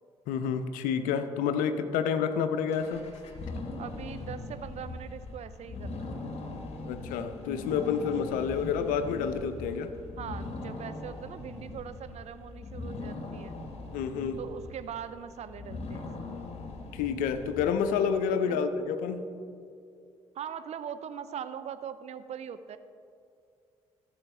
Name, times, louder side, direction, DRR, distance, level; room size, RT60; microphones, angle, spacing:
voice 1, 0.3-3.0 6.9-9.9 13.9-14.4 16.9-19.3, left 7 dB, 65° left, 9 dB, 0.6 m, -29 dB
sound 1, 2.7-18.1, left 2 dB, 45° left, 1.4 m, -40 dB
voice 2, 3.8-6.2 10.2-13.6 14.4-16.3 18.5-18.6 20.3-22.8, right 8 dB, 45° right, 12 dB, 0.5 m, -41 dB
14.0 x 7.1 x 3.2 m, 2.4 s
figure-of-eight pair, 45°, 15 cm